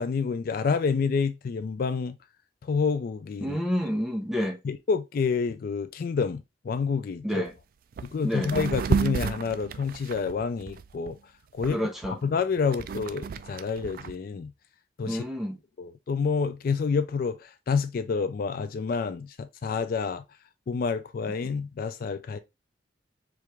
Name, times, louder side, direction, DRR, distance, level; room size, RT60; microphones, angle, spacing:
voice 1, 0.0-2.2 2.7-3.6 4.6-7.4 8.0-11.2 11.5-11.8 12.1-14.5 15.0-15.2 15.8-20.2 20.7-22.4, left 5 dB, 50° left, 0.3 m, -28 dB
voice 2, 3.4-4.6 7.2-7.5 8.2-8.5 11.7-12.2 15.1-15.6, equal, ahead, 0.7 m, -29 dB
sound 1, 7.5-7.6 7.9-8.1 8.4-11.1 11.6-14.1, right 6 dB, 55° right, 0.3 m, -31 dB
4.6 x 2.5 x 3.2 m
head